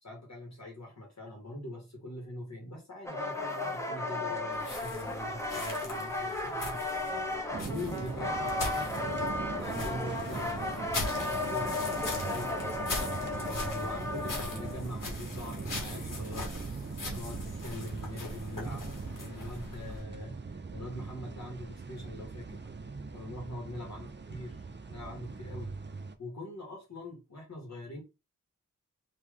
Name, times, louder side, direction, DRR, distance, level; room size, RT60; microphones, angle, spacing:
voice 1, 0.0-7.1 7.7-9.3 9.6-11.0 11.3-11.8 12.1-12.7 13.2-16.5 17.1-18.9 19.2-20.4 20.7-22.6 23.1-24.6 24.9-25.7 26.2-28.0, left 1 dB, 55° left, -1 dB, 1.6 m, -42 dB
sound 1, 3.0-14.8, left 2 dB, 10° left, 0.9 m, -35 dB
sound 2, 4.5-20.0, left 2 dB, 70° left, 1.5 m, -41 dB
sound 3, 7.5-26.2, right 4 dB, 35° right, 0.6 m, -41 dB
3.2 x 2.8 x 3.7 m, 0.27 s
cardioid pair, 55°, 33 cm